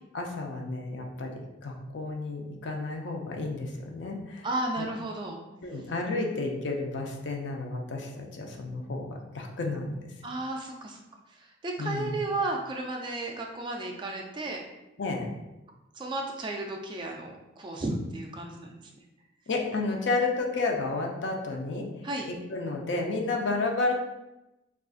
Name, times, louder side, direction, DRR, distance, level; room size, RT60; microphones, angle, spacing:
voice 1, 0.1-4.5 4.8-4.9 5.6-10.1 11.8-12.1 15.0-15.3 19.5-21.9 22.2-23.9, left 3 dB, 60° left, 1 dB, 0.5 m, -31 dB
voice 2, 4.4-5.4 10.2-11.0 11.6-14.6 16.0-18.9 22.0-22.3, right 2 dB, 25° right, 1 dB, 0.3 m, -33 dB
3.7 x 2.4 x 2.4 m, 0.95 s
head